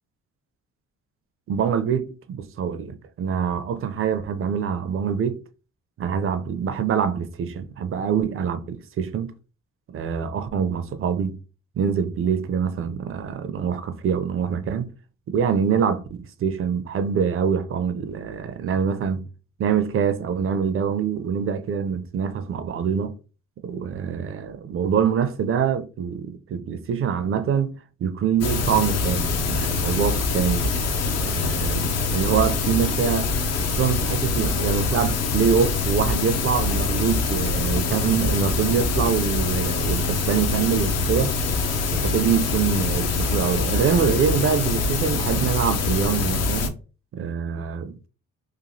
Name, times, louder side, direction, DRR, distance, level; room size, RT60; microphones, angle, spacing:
voice 1, 1.5-5.4 6.0-9.3 9.9-11.4 11.8-14.9 15.3-19.3 19.6-23.2 23.6-30.7 31.2-33.3 33.6-41.4 41.9-46.8 47.1-47.9, right 7 dB, 45° right, 0.4 m, -25 dB
sound 1, 28.4-46.7, left 4 dB, 55° left, 0.5 m, -24 dB
3.0 x 2.3 x 2.6 m
cardioid pair, 90°, 30 cm